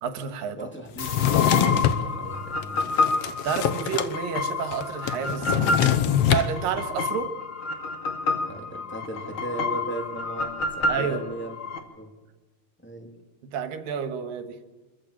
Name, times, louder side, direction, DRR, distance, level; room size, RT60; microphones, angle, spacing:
voice 1, 0.0-0.6 3.4-5.9 6.3-7.4 10.9-11.2 13.4-14.6, right 7 dB, 80° right, 10 dB, 3.1 m, -30 dB
voice 2, 0.6-3.0 8.4-11.5 12.0-12.1 12.8-13.1, right 1 dB, 5° left, 2 dB, 2.8 m, -37 dB
Drawer open or close, 1.0-2.0 2.6-4.1 4.4-4.5 4.7-6.5, left 10 dB, 65° left, 1.6 m, -23 dB
sound 1, 1.0-11.8, left 3 dB, 40° left, 2.7 m, -29 dB
26.0 x 14.5 x 8.7 m, 1.2 s
omnidirectional pair, 4.0 m